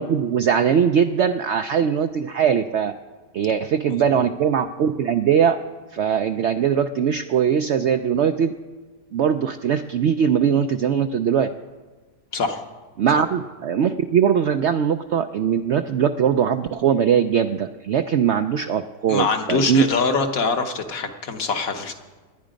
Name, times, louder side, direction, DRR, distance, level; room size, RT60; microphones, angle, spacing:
voice 1, 0.0-2.9 3.3-5.6 5.9-8.5 9.1-11.5 13.0-19.8, right 8 dB, 70° right, 8 dB, 0.6 m, -21 dB
voice 2, 19.1-21.9, left 4 dB, 60° left, 5 dB, 1.5 m, -23 dB
19.0 x 10.5 x 5.1 m, 1.3 s
omnidirectional pair, 1.7 m